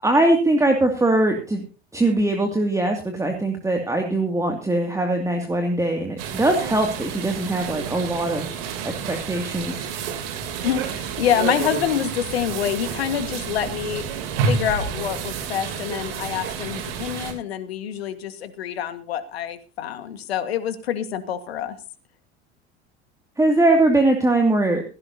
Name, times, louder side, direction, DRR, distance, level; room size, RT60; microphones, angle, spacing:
voice 1, 0.0-1.6 1.9-8.5 8.8-9.9 23.4-24.8, right 2 dB, 10° right, 4 dB, 2.4 m, -21 dB
sound 1, 6.2-17.3, right 6 dB, 65° right, 3.1 m, -29 dB
voice 2, 10.6-14.0 14.5-21.8, left 9 dB, 70° left, 12 dB, 1.7 m, -26 dB
16.5 x 16.0 x 2.8 m, 0.34 s
figure-of-eight pair, 70°, 32 cm